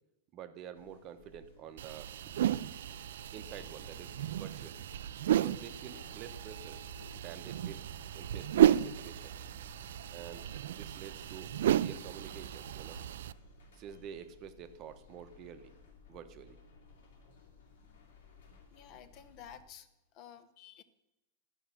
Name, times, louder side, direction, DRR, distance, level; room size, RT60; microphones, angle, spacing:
voice 1, 0.3-2.4 3.3-4.9 5.3-6.8 7.1-7.8 8.1-9.4 10.1-13.0 13.7-15.7 16.1-16.6, right 9 dB, 30° right, 9 dB, 0.8 m, -48 dB
sound 1, 0.7-19.6, left 5 dB, 90° left, 2.3 m, -58 dB
sound 2, 1.8-13.3, right 11 dB, 75° right, 0.3 m, -33 dB
voice 2, 18.7-19.9 20.1-20.8, left 9 dB, 35° left, 12 dB, 0.7 m, -52 dB
11.5 x 5.5 x 7.3 m, 0.95 s
supercardioid pair, 155°, 0 cm